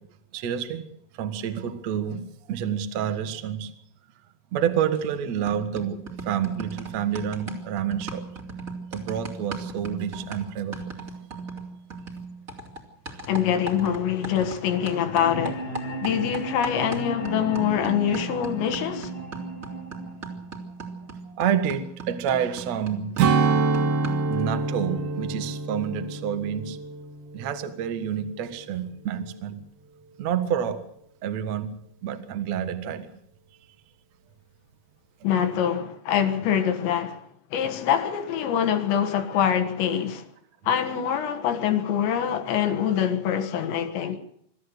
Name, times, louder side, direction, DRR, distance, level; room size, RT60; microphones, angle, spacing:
voice 1, 0.3-0.8 1.1-3.7 4.5-8.2 8.9-11.0 21.3-23.2 24.3-26.8 27.3-29.6 30.2-30.8 31.2-31.7 32.0-33.1, right 8 dB, 90° right, 1.5 m, -28 dB
sound 1, 4.9-5.2 5.5-14.6 14.9-24.3, right 3 dB, 30° right, 1.7 m, -38 dB
voice 2, 13.3-15.8 16.0-19.1 35.2-37.2 37.5-40.3 40.7-44.2, left 9 dB, 70° left, 3.5 m, -25 dB
sound 2, 15.2-21.2, right 2 dB, 35° left, 0.9 m, -36 dB
Strum, 23.2-27.9 28.3-28.5, right 4 dB, 60° right, 3.1 m, -26 dB
25.0 x 13.5 x 8.0 m
omnidirectional pair, 5.8 m